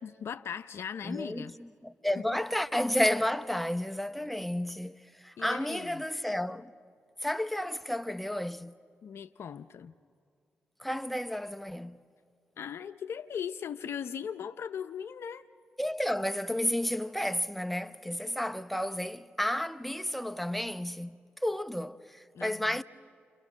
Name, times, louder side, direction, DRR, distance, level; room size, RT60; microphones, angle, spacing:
voice 1, 0.0-1.5 2.2-2.3 5.4-6.0 9.0-9.9 12.6-15.4 22.3-22.8, left 8 dB, 70° left, 0.6 m, -39 dB
voice 2, 1.0-6.7 7.2-8.7 10.8-12.0 15.8-22.8, left 1 dB, ahead, 0.9 m, -32 dB
29.0 x 26.5 x 6.3 m
supercardioid pair, 50°, 5 cm